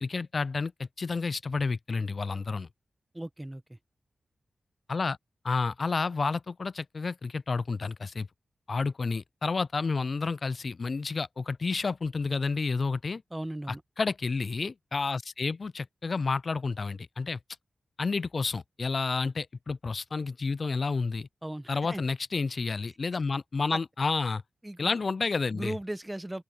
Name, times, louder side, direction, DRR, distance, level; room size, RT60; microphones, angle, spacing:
voice 1, 0.0-2.7 4.9-5.2 5.4-8.3 8.7-13.2 13.7-17.4 18.0-21.3 21.7-24.4 24.8-25.7, left 4 dB, 55° left, 0.4 m, -30 dB
voice 2, 3.1-3.6 13.3-13.8 21.4-22.0 23.7-23.8 24.6-24.9 25.5-26.4, right 1 dB, 15° right, 0.9 m, -37 dB
open air
cardioid pair, 60°, 0 cm